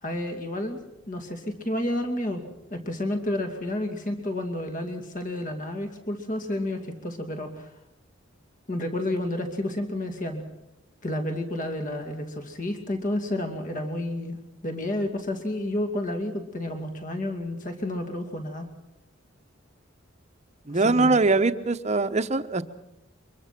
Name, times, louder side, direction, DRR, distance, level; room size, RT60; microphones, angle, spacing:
voice 1, 0.0-0.8 1.1-2.4 2.7-7.7 8.7-10.4 11.0-14.4 14.6-18.7 20.7-21.2, left 1 dB, 45° left, 5 dB, 2.6 m, -30 dB
voice 2, 20.7-22.6, right 3 dB, 35° right, 10 dB, 1.0 m, -22 dB
24.0 x 22.5 x 6.0 m, 0.88 s
head